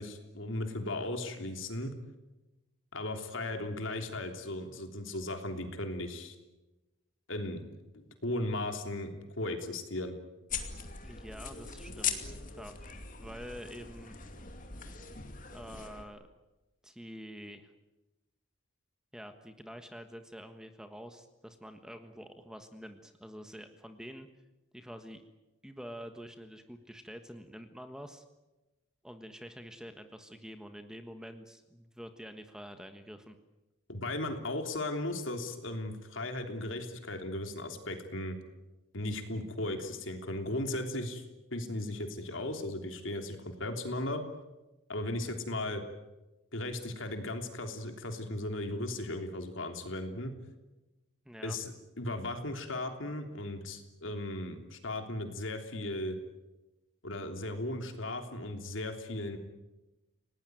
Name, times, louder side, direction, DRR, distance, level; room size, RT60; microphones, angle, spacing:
voice 1, 0.0-1.9 2.9-6.3 7.3-7.6 7.9-10.2 33.9-38.4 38.9-41.2 41.5-44.2 44.9-45.8 46.5-50.3 51.4-56.2 57.0-59.4, left 1 dB, 65° left, 5 dB, 3.3 m, -36 dB
sound 1, 10.5-16.0, left 7 dB, 40° left, 2.5 m, -40 dB
voice 2, 11.0-14.1 15.5-16.3 16.8-17.7 19.1-24.3 24.7-25.2 25.6-28.2 29.0-33.4 51.2-51.6, equal, 5° right, 7 dB, 1.4 m, -47 dB
29.0 x 18.5 x 9.3 m, 1.1 s
head